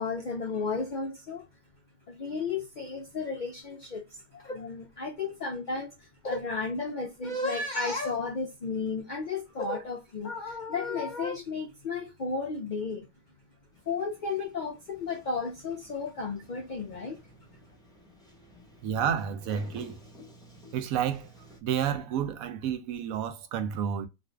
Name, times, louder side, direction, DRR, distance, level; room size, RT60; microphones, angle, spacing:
voice 1, 0.0-1.5 2.1-13.1 13.9-17.2, left 4 dB, 70° left, 0.4 m, -33 dB
Sliding door, 13.7-21.6, left 1 dB, 5° left, 0.6 m, -54 dB
voice 2, 18.8-20.0 20.7-21.3 21.6-24.1, right 8 dB, 80° right, 1.0 m, -30 dB
2.6 x 2.5 x 3.3 m
omnidirectional pair, 1.4 m